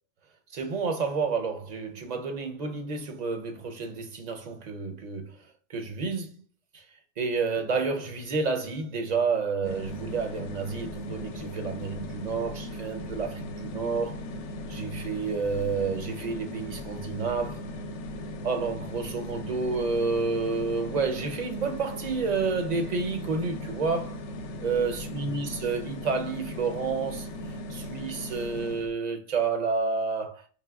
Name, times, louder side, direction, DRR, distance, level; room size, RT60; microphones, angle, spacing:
voice 1, 0.5-5.3 5.7-6.3 7.2-14.2 14.7-17.6 18.4-24.2 24.6-27.3 27.7-30.4, right 4 dB, 45° right, 0.6 m, -30 dB
sound 1, 9.6-28.9, left 1 dB, 80° left, 0.9 m, -38 dB
5.0 x 3.1 x 2.3 m
omnidirectional pair, 1.2 m